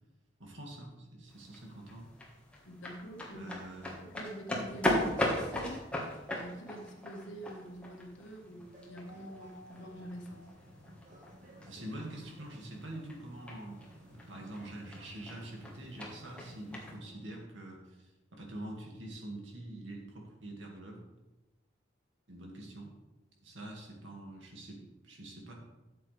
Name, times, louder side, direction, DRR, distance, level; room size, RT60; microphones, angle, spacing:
voice 1, 0.4-2.1 3.3-3.9 11.7-13.8 14.1-21.0 22.3-22.9 23.4-25.5, right 1 dB, 75° right, -1 dB, 2.3 m, -45 dB
sound 1, 1.3-17.0, left 1 dB, 5° left, 1.6 m, -39 dB
voice 2, 2.6-3.5 4.0-5.8 6.3-10.5, right 1 dB, 75° left, 2 dB, 1.6 m, -46 dB
sound 2, 8.5-17.5, equal, 40° right, 1.7 m, -55 dB
12.5 x 7.7 x 3.4 m, 1.1 s
head